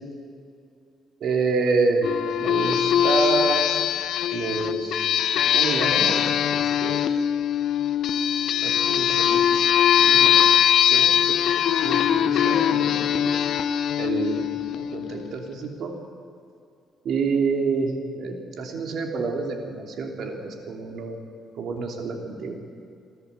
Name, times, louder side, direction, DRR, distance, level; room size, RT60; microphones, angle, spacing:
voice 1, 1.2-2.1 2.4-3.6 4.3-5.1 5.5-7.0 8.3-9.6 10.0-10.4 10.9-11.4 11.8-13.3 14.0-15.9 17.0-21.2 21.6-22.6, right 4 dB, 70° right, 3 dB, 3.0 m, -28 dB
sound 1, 2.0-15.2, left 9 dB, 70° left, 0.6 m, -21 dB
28.5 x 11.5 x 8.1 m, 2.4 s
cardioid pair, 90°, 0 cm